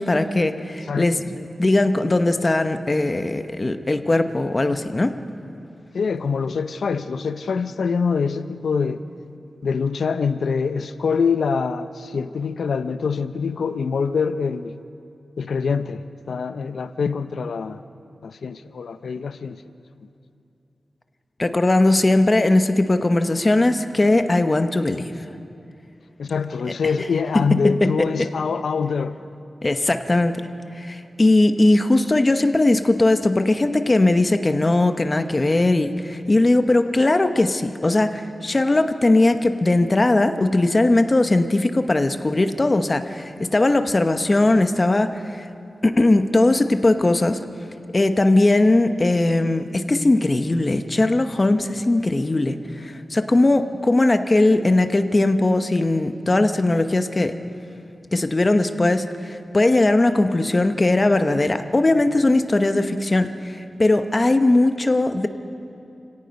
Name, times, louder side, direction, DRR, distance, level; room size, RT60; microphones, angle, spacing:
voice 1, 0.0-5.2 21.4-25.1 27.6-27.9 29.6-30.5 30.8-45.5 45.8-47.4 47.9-57.3 58.1-65.3, left 2 dB, 25° left, 8 dB, 0.9 m, -19 dB
voice 2, 0.9-1.2 5.9-9.0 9.6-14.8 15.4-17.8 18.2-19.6 26.2-29.2, left 5 dB, 85° left, 11 dB, 0.6 m, -24 dB
29.0 x 17.5 x 5.3 m, 2.7 s
wide cardioid pair, 130°, 0 cm